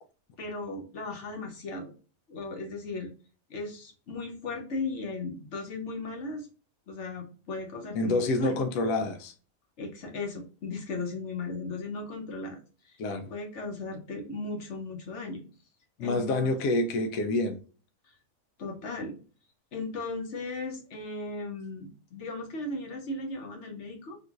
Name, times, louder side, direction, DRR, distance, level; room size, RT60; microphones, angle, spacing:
voice 1, 0.4-1.9 2.3-3.1 3.5-6.5 6.9-8.6 9.8-12.6 13.3-15.4 16.0-16.6 18.6-19.1 19.7-24.2, left 3 dB, 50° left, 1.0 m, -36 dB
voice 2, 7.9-9.3 13.0-13.3 16.0-17.6, left 2 dB, 75° left, 1.0 m, -27 dB
3.7 x 2.5 x 2.4 m
omnidirectional pair, 1.8 m